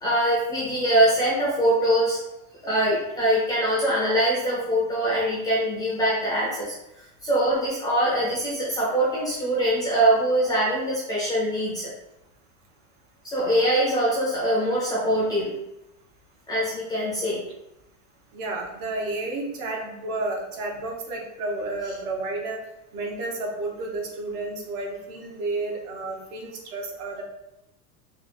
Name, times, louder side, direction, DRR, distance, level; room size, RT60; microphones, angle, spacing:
voice 1, 0.0-2.2 2.6-6.7 7.2-11.9 13.2-15.5 16.5-17.4, right 1 dB, 10° left, -6 dB, 0.4 m, -23 dB
voice 2, 18.3-22.6 22.9-27.2, right 2 dB, 75° right, 0 dB, 1.2 m, -31 dB
3.4 x 2.3 x 4.2 m, 0.88 s
supercardioid pair, 160°, 44 cm